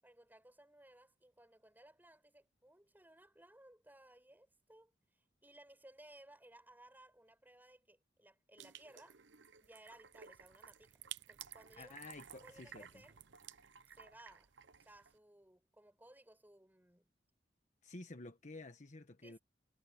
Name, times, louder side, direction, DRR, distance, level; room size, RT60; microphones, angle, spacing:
voice 1, 0.0-9.2 9.6-10.9 11.3-12.0 12.3-13.2 13.9-14.5 14.8-17.1 19.2-19.4, right 1 dB, 10° right, 7.9 m, -61 dB
sound 1, 8.6-15.2, right 9 dB, 75° right, 0.9 m, -55 dB
voice 2, 11.8-12.9 17.8-19.4, left 2 dB, 40° left, 1.2 m, -51 dB
head